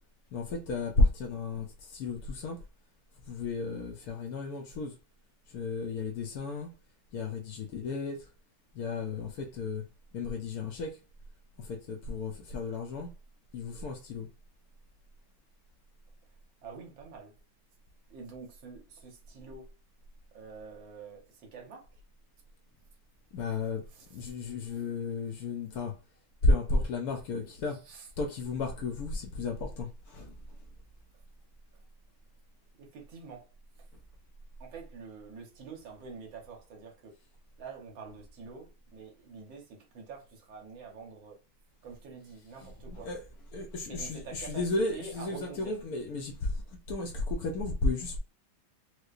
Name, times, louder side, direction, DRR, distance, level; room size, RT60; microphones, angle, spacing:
voice 1, 0.3-2.6 3.2-5.0 5.5-6.7 7.1-8.3 8.7-9.8 10.1-11.0 11.6-13.1 13.5-14.3 23.3-26.0 26.4-27.8 28.2-30.7 42.6-43.3 43.5-48.2, left 2 dB, 70° left, 0.9 m, -33 dB
voice 2, 16.6-17.3 18.1-19.7 20.3-21.9 23.9-24.0 27.9-28.1 32.7-33.5 33.8-33.9 34.6-37.2 37.6-41.4 41.8-43.1 43.9-44.6 44.9-45.8, right 5 dB, 70° right, 1.7 m, -46 dB
4.6 x 2.2 x 2.4 m
omnidirectional pair, 2.3 m